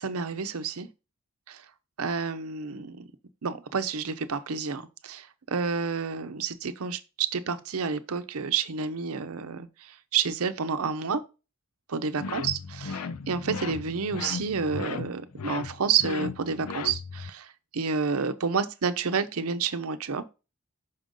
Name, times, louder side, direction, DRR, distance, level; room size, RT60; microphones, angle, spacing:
voice 1, 0.0-0.9 1.5-1.6 2.0-3.1 3.4-11.2 11.9-17.5 17.7-20.2, right 5 dB, 75° right, 0.7 m, -29 dB
sound 1, 12.2-17.3, left 5 dB, 90° left, 0.5 m, -36 dB
5.6 x 5.2 x 3.7 m
head